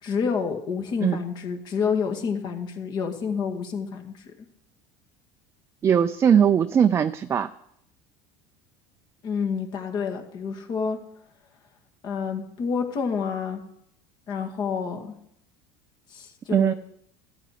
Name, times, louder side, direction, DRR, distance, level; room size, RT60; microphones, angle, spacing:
voice 1, 0.0-4.1 9.2-11.0 12.0-13.6 14.3-15.1 16.1-16.7, left 6 dB, 45° left, 4 dB, 2.0 m, -28 dB
voice 2, 5.8-7.5 16.5-16.7, right 8 dB, 25° right, 8 dB, 0.4 m, -20 dB
13.5 x 10.5 x 5.1 m, 0.73 s
supercardioid pair, 135°, 10 cm